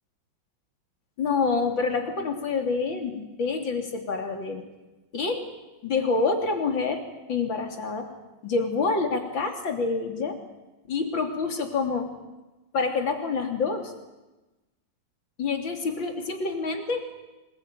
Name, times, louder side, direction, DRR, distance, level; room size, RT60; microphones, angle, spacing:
voice 1, 1.2-4.6 5.1-5.4 5.8-7.0 7.3-8.1 8.4-10.4 10.9-12.1 12.7-13.9 15.4-17.2, left 4 dB, 70° left, 4 dB, 3.8 m, -27 dB
26.0 x 21.0 x 9.3 m, 1.1 s
omnidirectional pair, 2.2 m